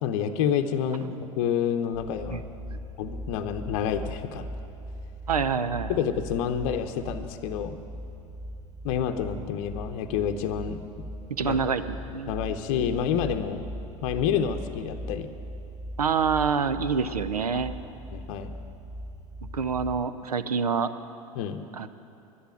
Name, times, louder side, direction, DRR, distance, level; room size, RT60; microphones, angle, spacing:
voice 1, 0.0-2.4 3.0-4.5 5.9-7.8 8.8-10.8 11.4-11.6 12.3-13.6 14.0-15.3 17.5-17.6 18.1-18.5 21.4-21.6, left 8 dB, 55° left, 7 dB, 0.8 m, -28 dB
sound 1, 1.9-20.0, equal, 45° right, 2.6 m, -40 dB
voice 2, 5.3-6.0 11.4-12.3 16.0-17.7 19.5-20.9 21.7-21.9, right 6 dB, 85° right, 12 dB, 0.6 m, -26 dB
11.5 x 10.5 x 9.1 m, 2.7 s
figure-of-eight pair, 80°, 19 cm